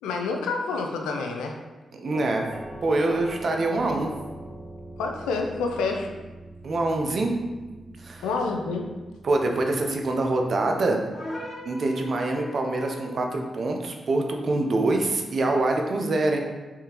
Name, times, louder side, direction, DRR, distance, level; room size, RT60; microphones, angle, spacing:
voice 1, 0.0-1.5 5.0-6.1 8.2-8.8, left 4 dB, 90° left, 2 dB, 0.4 m, -28 dB
voice 2, 1.9-2.5 2.8-4.1 6.6-7.4 8.0-8.2 9.2-11.1 11.7-16.4, right 2 dB, 60° right, 2 dB, 0.5 m, -25 dB
Doorbell, 2.1-10.9, right 1 dB, 10° right, 1.1 m, -43 dB
sound 1, 11.1-13.3, left 2 dB, 50° left, 1.4 m, -39 dB
3.5 x 3.3 x 2.9 m, 1.2 s
supercardioid pair, 40°, 0 cm